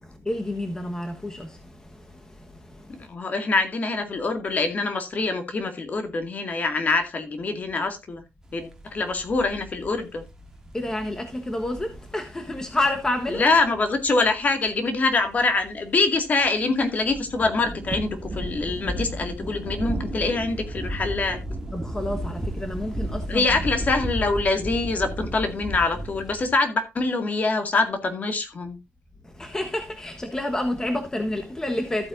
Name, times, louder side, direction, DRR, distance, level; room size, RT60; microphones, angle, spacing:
voice 1, 0.0-3.1 10.7-13.4 21.7-23.6 29.2-32.1, left 1 dB, 15° left, 1.3 m, -29 dB
voice 2, 3.1-8.2 8.5-10.2 13.4-21.4 23.3-28.8, left 3 dB, 40° left, 2.1 m, -24 dB
sound 1, 8.4-26.5, right 1 dB, 15° right, 2.2 m, -34 dB
14.0 x 8.6 x 2.6 m
cardioid pair, 130°, 4 cm